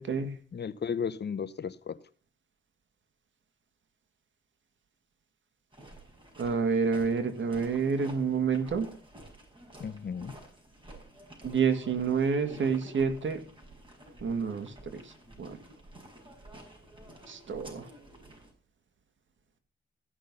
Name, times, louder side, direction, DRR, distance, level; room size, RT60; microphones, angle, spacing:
voice 1, 0.0-0.3 6.4-8.9 11.4-13.4 14.2-15.0 15.4-15.6 17.3-17.8, right 5 dB, 65° right, 2.2 m, -28 dB
voice 2, 0.5-2.0 9.8-10.4, left 6 dB, 55° left, 0.9 m, -34 dB
sound 1, 5.7-18.5, right 1 dB, 25° right, 5.8 m, -51 dB
15.0 x 6.3 x 5.5 m
cardioid pair, 65°, 21 cm